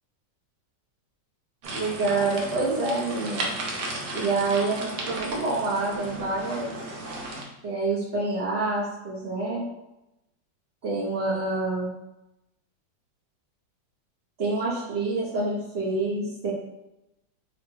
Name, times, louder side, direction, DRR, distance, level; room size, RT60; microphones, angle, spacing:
sound 1, 1.6-7.4, right 2 dB, 65° right, 1.3 m, -34 dB
voice 1, 1.7-3.4 4.1-7.0 7.6-9.6 10.8-11.9 14.4-16.5, right 3 dB, 40° right, -10 dB, 1.0 m, -27 dB
4.0 x 2.4 x 4.6 m, 0.92 s
omnidirectional pair, 2.1 m